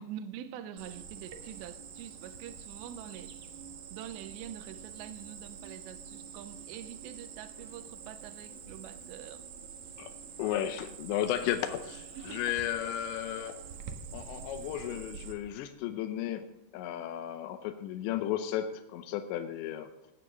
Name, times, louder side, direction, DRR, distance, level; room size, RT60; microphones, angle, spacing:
voice 1, 0.0-3.4 3.9-9.4 12.1-12.4, right 10 dB, 80° right, 11 dB, 2.9 m, -45 dB
Cricket, 0.8-15.3, right 7 dB, 65° right, 2.0 m, -46 dB
voice 2, 10.4-13.5 14.1-16.5 16.7-19.9, left 11 dB, 80° left, 7 dB, 2.9 m, -34 dB
16.0 x 9.5 x 6.7 m, 0.90 s
omnidirectional pair, 5.3 m